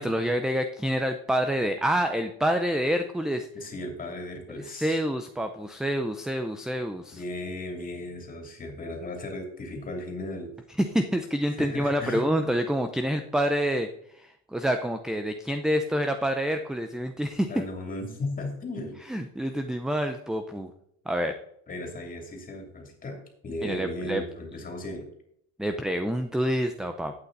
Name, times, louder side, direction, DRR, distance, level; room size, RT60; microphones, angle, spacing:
voice 1, 0.0-3.5 4.5-7.2 10.8-13.9 14.1-17.5 19.1-20.7 21.1-21.3 23.6-24.2 25.6-27.1, equal, ahead, 7 dB, 0.6 m, -27 dB
voice 2, 3.5-5.0 7.1-10.5 11.6-12.3 17.5-18.9 21.7-25.1, left 2 dB, 25° left, 2 dB, 3.0 m, -36 dB
11.5 x 8.5 x 4.0 m, 0.71 s
cardioid pair, 135°, 33 cm